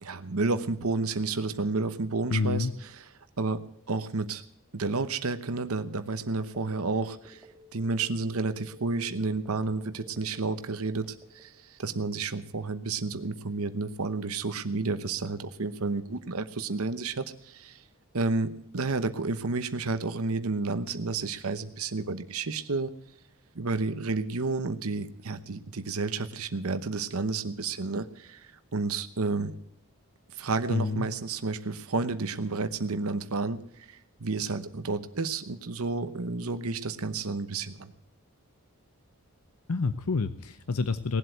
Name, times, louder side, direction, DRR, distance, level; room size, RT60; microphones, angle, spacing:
voice 1, 0.0-3.1 3.4-3.6 3.9-4.4 4.7-7.4 7.7-11.1 11.3-17.8 18.1-22.9 23.5-29.5 30.4-37.9, right 3 dB, 75° right, 10 dB, 0.9 m, -31 dB
voice 2, 2.3-2.7 30.7-31.1 39.7-41.2, left 4 dB, 80° left, 12 dB, 0.7 m, -28 dB
Telephone, 6.5-11.6, right 1 dB, 5° right, 1.9 m, -51 dB
18.5 x 7.9 x 9.1 m, 0.72 s
head